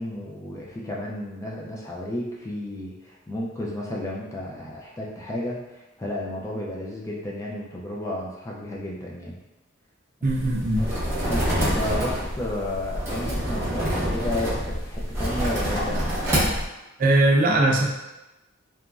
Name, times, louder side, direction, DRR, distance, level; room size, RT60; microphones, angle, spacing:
voice 1, 0.0-9.4 11.3-16.2, left 1 dB, 15° left, -4 dB, 0.4 m, -32 dB
voice 2, 10.2-10.8 17.0-17.9, right 2 dB, 45° right, -1 dB, 0.4 m, -20 dB
sound 1, 10.3-16.7, equal, 15° right, 0.9 m, -26 dB
2.9 x 2.5 x 2.3 m, 1.0 s
head